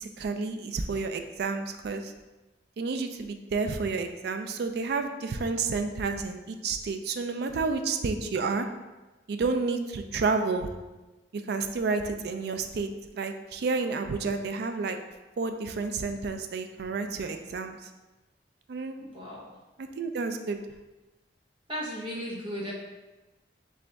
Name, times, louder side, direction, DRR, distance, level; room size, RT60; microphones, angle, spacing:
voice 1, 0.0-2.1 2.8-8.7 9.3-10.7 11.3-15.0 15.4-17.9 18.7-19.0 19.8-20.6, right 4 dB, 65° right, 7 dB, 0.4 m, -30 dB
voice 2, 19.0-19.4 21.7-22.7, equal, 30° right, -5 dB, 1.1 m, -35 dB
3.4 x 3.3 x 4.0 m, 1.1 s
head